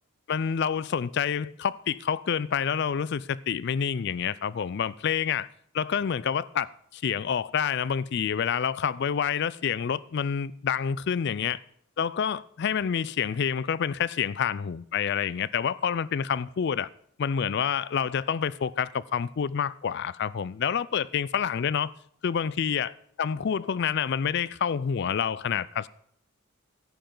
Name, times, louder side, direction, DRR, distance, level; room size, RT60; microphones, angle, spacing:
voice 1, 0.3-5.5 5.7-11.6 12.0-16.9 17.2-21.9 22.2-22.9 23.2-25.9, left 7 dB, 50° left, 0.3 m, -28 dB
13.0 x 10.5 x 3.8 m
head